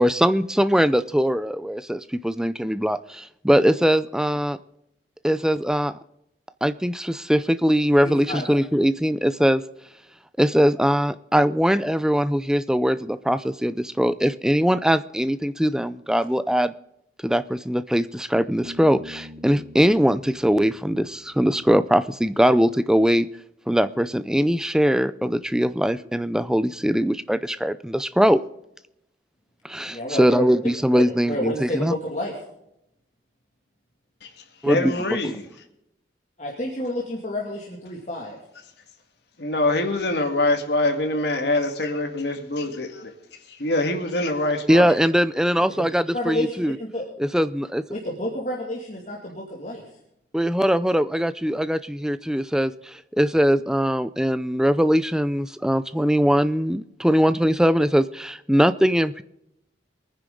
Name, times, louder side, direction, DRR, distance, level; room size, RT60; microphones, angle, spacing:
voice 1, 0.0-4.6 5.2-6.0 6.6-9.6 10.4-16.7 17.2-23.3 23.7-28.4 29.6-31.9 34.6-35.4 44.7-46.8 47.2-47.8 50.3-59.2, equal, 5° right, 14 dB, 0.4 m, -21 dB
voice 2, 8.0-8.4 29.9-30.4 30.9-32.3 36.4-38.4 45.6-45.9 46.1-47.0 47.9-49.8, left 1 dB, 40° left, -2 dB, 2.3 m, -30 dB
Bass guitar, 18.6-22.1, left 1 dB, 55° right, 2.0 m, -45 dB
voice 3, 34.6-35.5 39.4-43.1 43.6-44.9, left 2 dB, 60° left, 4 dB, 2.0 m, -24 dB
22.5 x 10.0 x 3.8 m, 0.82 s
head